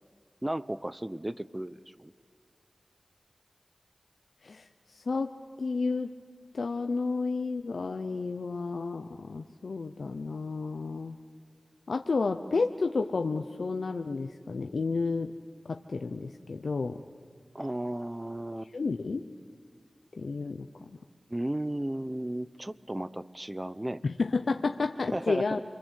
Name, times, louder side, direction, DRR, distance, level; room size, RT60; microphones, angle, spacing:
voice 1, 0.4-2.1 17.5-18.7 21.3-24.0 25.1-25.6, right 1 dB, 20° right, 17 dB, 0.8 m, -34 dB
voice 2, 4.4-5.3 5.6-6.1 6.5-11.2 11.9-15.3 15.6-17.0 18.6-19.3 20.2-21.0 24.0-25.6, left 4 dB, 85° left, 6 dB, 0.7 m, -31 dB
28.5 x 23.5 x 8.4 m, 2.1 s
cardioid pair, 45°, 0 cm